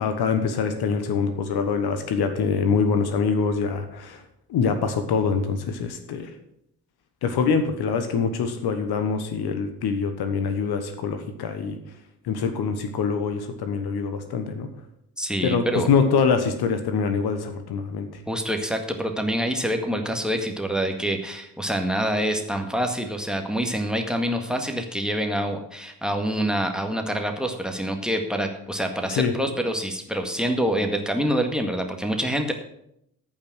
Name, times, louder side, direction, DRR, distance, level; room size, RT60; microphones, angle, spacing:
voice 1, 0.0-4.2 4.5-6.3 7.2-11.8 12.2-14.7 15.4-18.1 29.1-29.3, left 5 dB, 55° left, 8 dB, 1.3 m, -24 dB
voice 2, 15.2-15.9 18.3-32.5, equal, ahead, 5 dB, 1.8 m, -26 dB
14.0 x 5.8 x 6.3 m, 0.77 s
figure-of-eight pair, 45°, 46 cm